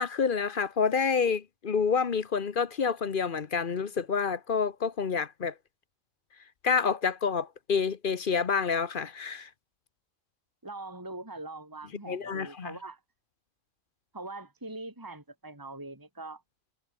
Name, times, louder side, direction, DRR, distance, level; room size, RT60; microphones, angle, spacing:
voice 1, 0.0-5.5 6.6-9.5 12.1-12.7, left 5 dB, 45° left, 1.0 m, -28 dB
voice 2, 10.6-13.0 14.1-16.4, right 2 dB, 15° right, 2.5 m, -42 dB
omnidirectional pair, 1.4 m